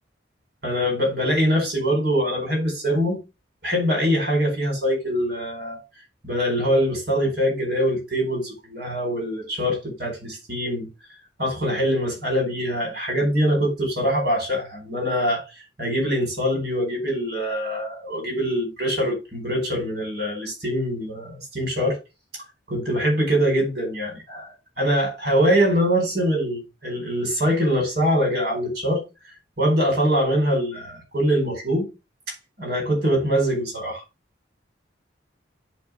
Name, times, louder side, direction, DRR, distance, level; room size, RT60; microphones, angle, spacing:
voice 1, 0.6-3.2 3.6-5.8 6.2-10.9 11.4-22.0 22.7-29.0 29.6-31.9 32.6-34.0, equal, 55° right, 4.4 m, -23 dB
10.5 x 3.8 x 3.4 m
head